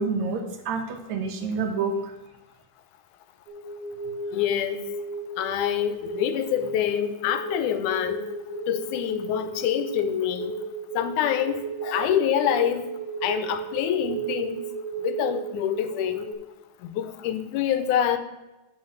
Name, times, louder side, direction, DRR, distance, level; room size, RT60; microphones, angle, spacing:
voice 1, 0.0-2.1, right 4 dB, 70° right, 5 dB, 2.2 m, -28 dB
sound 1, 3.5-16.3, right 3 dB, 85° right, 3.8 m, -34 dB
voice 2, 4.3-4.8 5.4-8.3 8.7-10.6 10.9-12.9 13.2-14.6 15.0-16.3 16.9-18.2, left 10 dB, 85° left, 10 dB, 2.1 m, -26 dB
6.9 x 6.4 x 7.0 m, 1.0 s
omnidirectional pair, 3.6 m